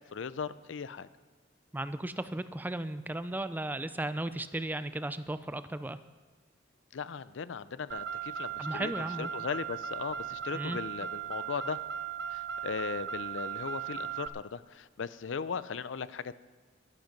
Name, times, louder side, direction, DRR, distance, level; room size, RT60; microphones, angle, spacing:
voice 1, 0.1-1.1 6.9-8.9 9.2-11.8 12.3-16.4, left 5 dB, 85° left, 16 dB, 0.5 m, -38 dB
voice 2, 1.7-6.0 8.6-9.3 10.5-10.8, right 1 dB, 10° right, 12 dB, 0.4 m, -35 dB
Car, 7.9-14.3, right 8 dB, 65° right, 0.7 m, -37 dB
12.0 x 12.0 x 5.3 m, 1.3 s
head